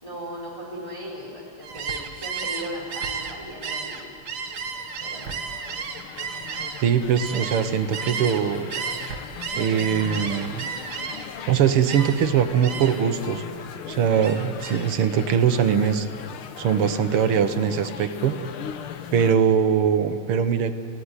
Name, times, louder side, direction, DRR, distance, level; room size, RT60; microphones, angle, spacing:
voice 1, 0.0-4.2 5.0-5.3 13.8-14.0, equal, 15° left, -3 dB, 4.9 m, -37 dB
Gull seagull, 1.6-8.4 8.7-11.4 11.9-12.3 12.6-13.1 13.5-14.9, right 5 dB, 65° right, 2.1 m, -33 dB
sound 1, 4.1-19.4, left 8 dB, 75° left, 1.9 m, -38 dB
voice 2, 6.8-8.7 9.6-10.7 11.5-13.4 13.9-16.1 16.6-18.3 19.1-20.8, right 8 dB, 85° right, 9 dB, 2.0 m, -22 dB
29.5 x 17.0 x 9.7 m, 2.6 s
omnidirectional pair, 2.4 m